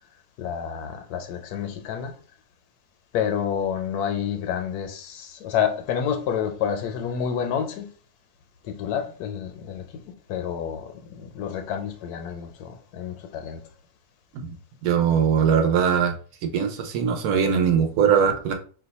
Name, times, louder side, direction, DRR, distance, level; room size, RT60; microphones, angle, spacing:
voice 1, 0.4-2.1 3.1-7.9 8.6-9.8 10.3-13.6, left 8 dB, 80° left, 1.1 m, -29 dB
voice 2, 14.8-16.1 16.4-18.5, right 7 dB, 85° right, 1.1 m, -21 dB
2.8 x 2.2 x 4.0 m
omnidirectional pair, 1.6 m